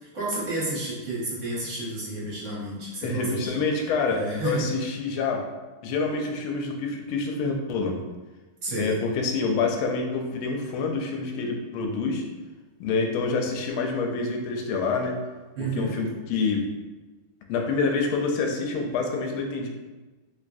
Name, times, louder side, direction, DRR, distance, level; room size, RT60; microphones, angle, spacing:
voice 1, 0.0-3.5 4.1-4.7 8.6-9.0 15.6-16.0, right 2 dB, 50° right, -6 dB, 1.0 m, -31 dB
voice 2, 3.0-5.5 5.8-8.0 8.7-12.2 12.8-15.2 15.8-16.7 17.5-19.7, left 4 dB, 80° left, 2 dB, 1.3 m, -27 dB
3.4 x 3.1 x 2.6 m, 1.2 s
omnidirectional pair, 2.4 m